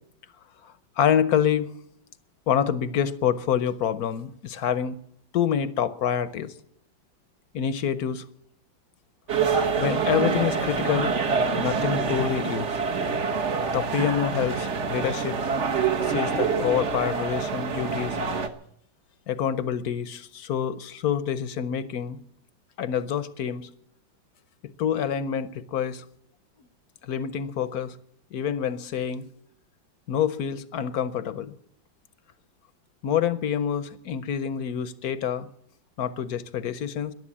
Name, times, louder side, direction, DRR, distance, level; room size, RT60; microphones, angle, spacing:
voice 1, 0.6-1.7 2.5-5.0 5.3-6.5 7.5-8.2 9.8-11.1 11.5-12.7 13.7-15.4 16.0-18.2 19.3-22.2 22.8-23.7 24.8-26.0 27.0-27.9 28.3-29.3 30.1-31.5 33.0-35.5 36.0-37.1, left 8 dB, 60° left, 15 dB, 1.1 m, -27 dB
sound 1, 9.3-18.5, right 5 dB, 40° right, 1.3 m, -26 dB
14.5 x 11.0 x 8.6 m, 0.68 s
omnidirectional pair, 2.1 m